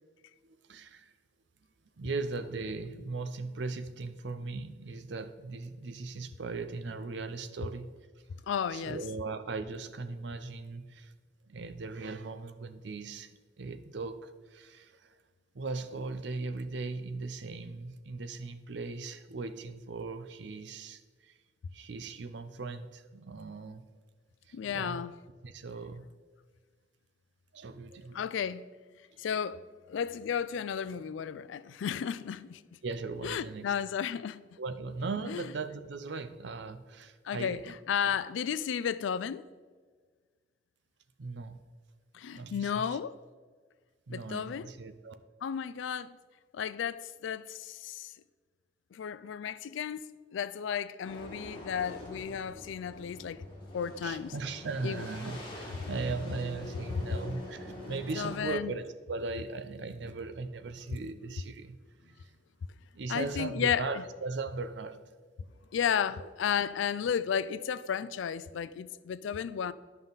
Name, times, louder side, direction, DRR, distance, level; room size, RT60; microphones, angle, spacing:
voice 1, 0.4-1.1 2.0-7.9 8.7-11.1 11.5-13.3 13.6-15.1 15.5-21.4 21.7-23.8 24.5-25.0 25.4-26.1 27.5-28.3 32.8-33.7 34.6-37.7 41.2-41.6 42.3-43.0 44.1-45.1 54.0-62.3 63.0-65.0 66.2-66.3, right 3 dB, 65° right, 0.5 m, -38 dB
voice 2, 8.5-9.0 24.5-25.1 28.1-28.7 29.2-32.6 33.2-34.4 35.3-35.4 37.2-39.4 42.1-43.2 44.1-44.7 45.4-46.2 46.5-48.1 48.9-53.5 53.7-54.3 54.8-55.1 57.8-58.7 63.1-64.0 65.7-69.7, left 7 dB, 80° left, 0.3 m, -33 dB
sound 1, 51.0-58.5, left 1 dB, 25° left, 1.7 m, -45 dB
11.0 x 5.5 x 3.9 m
head